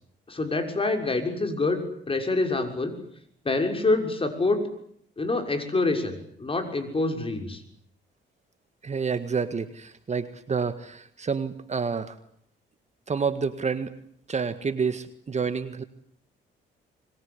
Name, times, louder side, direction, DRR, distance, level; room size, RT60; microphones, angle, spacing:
voice 1, 0.3-2.9 3.4-4.6 5.2-7.6, left 3 dB, 25° left, 6 dB, 6.5 m, -26 dB
voice 2, 8.8-12.2 13.1-13.9 14.3-15.8, right 5 dB, 35° right, 10 dB, 1.8 m, -29 dB
25.5 x 22.0 x 10.0 m, 0.67 s
cardioid pair, 90°, 20 cm